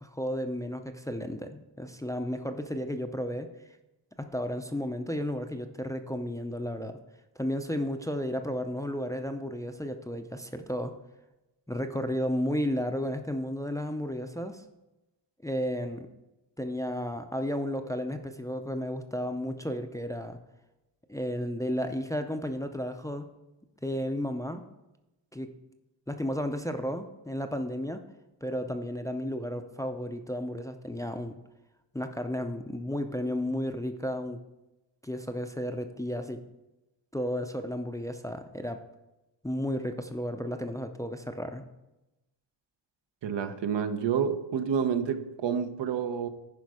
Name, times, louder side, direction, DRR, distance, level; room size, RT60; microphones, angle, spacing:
voice 1, 0.0-3.5 4.2-7.0 7.4-10.9 11.7-14.6 15.4-16.1 16.6-20.4 21.1-23.3 23.8-24.6 25.3-25.5 26.1-28.0 28.4-31.4 31.9-34.4 35.0-36.4 37.1-38.8 39.4-41.6, equal, 10° left, 0.5 m, -33 dB
voice 2, 43.2-46.3, right 7 dB, 70° right, 0.8 m, -29 dB
10.5 x 5.0 x 4.8 m
wide cardioid pair, 105°, 45 cm